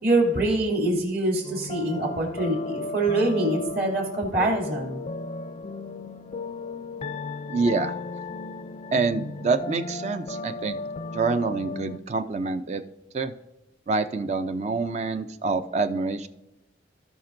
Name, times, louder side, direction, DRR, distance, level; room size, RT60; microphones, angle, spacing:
voice 1, 0.0-5.0, right 2 dB, 55° right, -1 dB, 2.6 m, -24 dB
sound 1, 1.4-12.0, left 3 dB, 35° left, 0.3 m, -35 dB
voice 2, 7.5-8.0 8.9-10.8 11.1-12.8 13.1-13.3 13.9-16.3, right 4 dB, 40° right, 10 dB, 0.4 m, -26 dB
17.5 x 5.8 x 2.6 m, 0.97 s
head